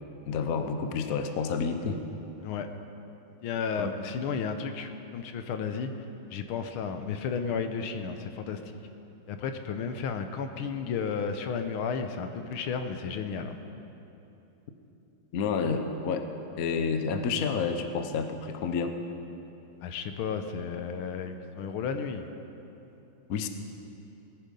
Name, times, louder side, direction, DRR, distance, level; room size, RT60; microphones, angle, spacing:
voice 1, 0.3-2.0 3.8-3.9 15.3-16.3 16.6-19.0 23.3-23.5, left 5 dB, 60° left, 7 dB, 1.0 m, -29 dB
voice 2, 3.4-5.9 6.3-8.8 9.3-13.6 19.8-22.3, left 6 dB, 75° left, 7 dB, 1.6 m, -33 dB
18.5 x 10.5 x 5.3 m, 2.9 s
omnidirectional pair, 2.4 m